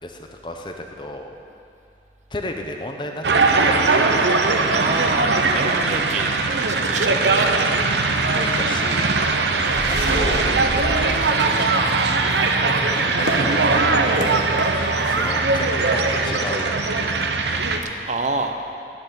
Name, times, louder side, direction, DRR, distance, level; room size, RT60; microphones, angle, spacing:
voice 1, 0.0-1.3 2.3-3.7 8.3-9.1 9.9-10.5 10.9-11.9 12.6-14.3 15.0-16.7, left 1 dB, 25° left, 3 dB, 0.8 m, -33 dB
sound 1, 3.2-17.8, right 3 dB, 80° right, 0.9 m, -20 dB
sound 2, 4.5-5.5 5.8-5.9 6.2-6.4 7.6-8.6 9.1-11.4, equal, 60° right, 1.7 m, -32 dB
voice 2, 4.7-7.7 18.1-18.5, right 3 dB, 40° right, 5 dB, 0.8 m, -28 dB
sound 3, 8.9-15.3, left 1 dB, 85° left, 1.6 m, -36 dB
10.5 x 8.1 x 9.9 m, 2.6 s
head